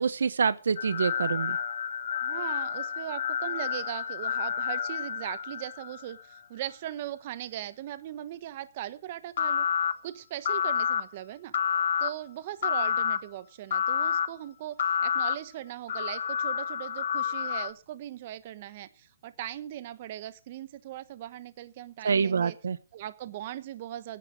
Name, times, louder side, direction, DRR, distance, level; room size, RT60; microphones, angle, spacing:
voice 1, 0.0-1.6 22.0-22.8, right 6 dB, 80° right, 16 dB, 0.8 m, -26 dB
sound 1, 0.8-6.1 9.4-9.9 10.4-11.0 11.5-12.1 12.6-13.2 13.7-14.3 14.8-15.3 15.9-17.7, left 7 dB, 55° left, 1.4 m, -29 dB
voice 2, 2.2-9.7 10.0-11.5 12.0-22.6 22.9-24.2, right 13 dB, 35° right, 15 dB, 1.2 m, -39 dB
16.5 x 10.5 x 5.0 m, 0.33 s
hypercardioid pair, 160°, 0 cm